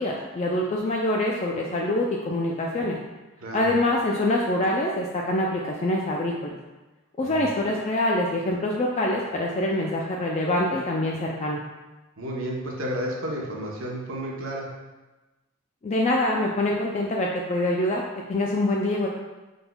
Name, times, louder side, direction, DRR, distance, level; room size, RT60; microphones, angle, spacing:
voice 1, 0.0-3.0 3.5-6.6 7.2-11.6 15.8-18.0 18.3-19.1, left 1 dB, 30° left, -2 dB, 0.3 m, -25 dB
voice 2, 3.4-3.7 7.2-7.5 12.2-14.7, equal, 60° right, -2 dB, 0.9 m, -32 dB
5.3 x 4.0 x 2.3 m, 1.1 s
head